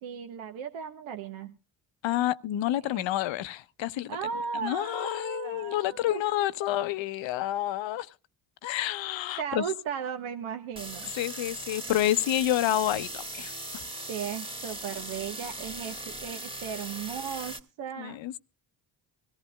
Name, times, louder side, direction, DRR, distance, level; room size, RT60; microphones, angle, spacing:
voice 1, 0.0-1.5 2.9-3.0 4.1-6.3 9.4-11.1 14.1-18.2, right 7 dB, 75° right, 1.3 m, -36 dB
voice 2, 2.0-4.2 4.6-8.1 8.6-9.6 11.0-13.8 18.0-18.4, left 13 dB, 70° left, 0.8 m, -29 dB
sound 1, 10.8-17.6, right 1 dB, 10° right, 1.9 m, -39 dB
23.5 x 14.5 x 2.2 m
supercardioid pair, 60°, 48 cm